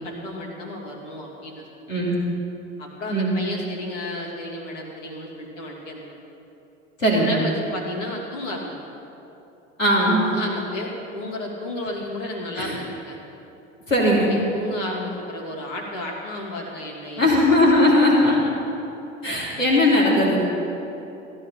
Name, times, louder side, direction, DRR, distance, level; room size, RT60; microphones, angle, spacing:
voice 1, 0.0-1.6 2.8-6.2 7.2-8.7 10.2-13.2 14.0-17.9 18.2-18.4, left 1 dB, 65° left, -2 dB, 2.7 m, -33 dB
voice 2, 7.0-7.3 9.8-10.2 12.6-12.8 13.9-14.3 17.2-18.3 19.2-20.4, left 1 dB, 90° left, -4 dB, 2.8 m, -18 dB
15.5 x 11.0 x 5.7 m, 3.0 s
figure-of-eight pair, 70°, 38 cm